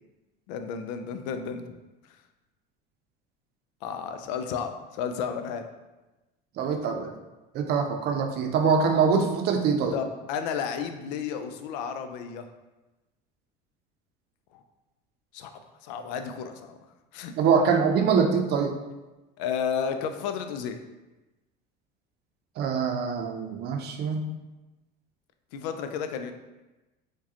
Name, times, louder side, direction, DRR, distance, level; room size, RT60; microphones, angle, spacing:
voice 1, 0.5-1.6 3.8-5.7 9.9-12.5 14.5-14.6 15.3-15.5 15.8-16.8 17.1-17.3 19.4-20.8 25.5-26.3, left 7 dB, 85° left, 7 dB, 0.4 m, -32 dB
voice 2, 6.6-7.1 7.5-9.9 17.4-18.8 22.6-24.3, right 6 dB, 50° right, 3 dB, 0.5 m, -24 dB
4.7 x 2.2 x 2.8 m, 1.1 s
supercardioid pair, 120°, 21 cm